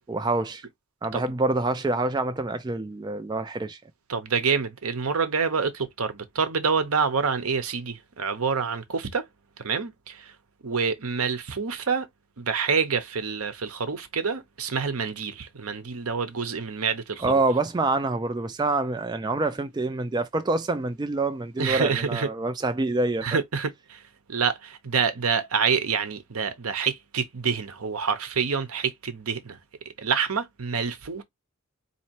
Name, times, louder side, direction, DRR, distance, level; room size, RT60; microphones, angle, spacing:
voice 1, 0.1-0.6 1.0-3.8 17.2-23.3, right 2 dB, 20° right, 0.3 m, -26 dB
voice 2, 4.1-9.3 9.6-10.3 10.6-12.1 12.4-17.4 21.6-22.3 23.2-24.0 24.3-29.6 30.0-31.2, right 5 dB, 80° right, 0.8 m, -27 dB
4.2 x 2.8 x 2.8 m
head